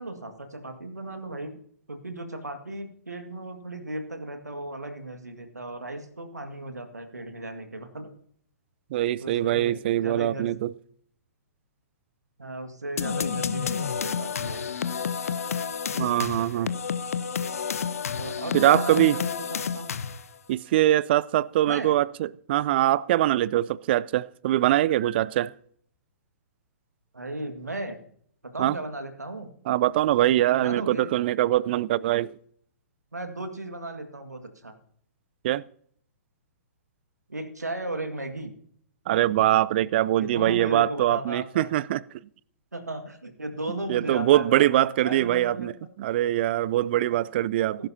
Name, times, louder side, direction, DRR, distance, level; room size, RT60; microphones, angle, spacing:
voice 1, 0.0-1.6 1.9-8.1 9.2-10.5 12.4-14.7 15.9-16.8 18.2-19.9 21.7-22.0 27.1-28.0 28.4-29.5 30.6-31.1 33.1-34.8 37.3-38.5 40.2-41.7 42.7-45.7 47.1-47.2, right 1 dB, 80° right, 1.9 m, -36 dB
voice 2, 8.9-10.7 16.0-16.7 18.5-19.2 20.5-25.5 28.6-28.8 29.7-32.3 35.4-35.6 39.1-42.0 43.9-45.7 46.0-47.9, right 14 dB, 40° right, 0.4 m, -23 dB
sound 1, 13.0-20.4, left 6 dB, 60° left, 0.8 m, -30 dB
19.5 x 11.0 x 2.8 m
figure-of-eight pair, 120°, 9 cm